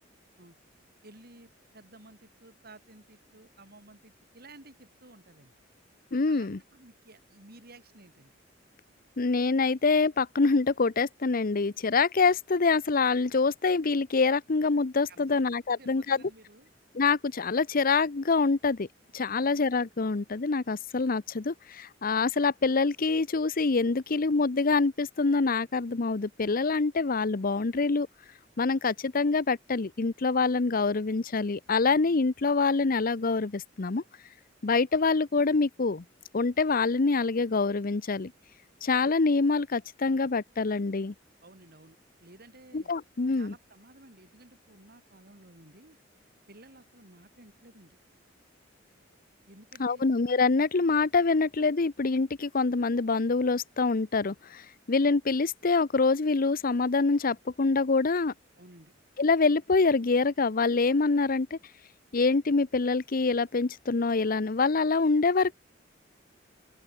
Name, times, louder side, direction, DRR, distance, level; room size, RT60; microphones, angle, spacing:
voice 1, 1.0-5.5 6.2-8.3 15.1-16.7 19.2-19.3 41.4-42.9 43.3-46.0 46.5-48.0 49.5-50.0 58.6-58.9, right 2 dB, 55° right, 6.3 m, -54 dB
voice 2, 6.1-6.6 9.2-16.2 16.9-18.9 19.1-28.1 28.6-34.0 34.6-36.0 36.3-38.3 38.8-41.1 42.7-43.5 49.8-58.3 59.2-61.6 62.1-65.5, left 4 dB, 50° left, 0.7 m, -25 dB
open air
head